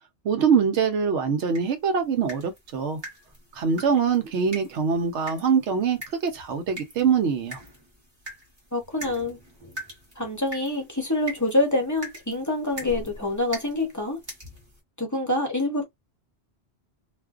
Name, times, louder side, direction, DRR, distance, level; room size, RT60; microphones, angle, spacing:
voice 1, 0.2-3.0 3.5-7.6, right 6 dB, 90° right, 1.0 m, -23 dB
sound 1, 1.5-14.8, right 1 dB, 25° right, 0.9 m, -43 dB
voice 2, 8.7-9.4 10.2-14.2 15.0-15.8, left 2 dB, 20° left, 0.6 m, -26 dB
2.5 x 2.1 x 2.3 m
omnidirectional pair, 1.1 m